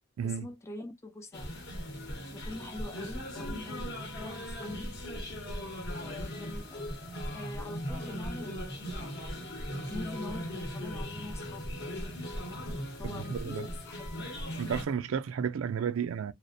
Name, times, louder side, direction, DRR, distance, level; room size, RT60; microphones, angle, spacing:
voice 1, 0.2-1.6 2.3-4.9 6.0-7.0 7.3-9.1 9.9-11.8 13.0-14.2, left 2 dB, 15° left, 0.4 m, -44 dB
sound 1, 1.3-14.9, equal, 55° left, 0.8 m, -38 dB
voice 2, 13.0-13.7 14.6-16.3, right 7 dB, 75° right, 0.4 m, -32 dB
2.3 x 2.1 x 2.5 m
head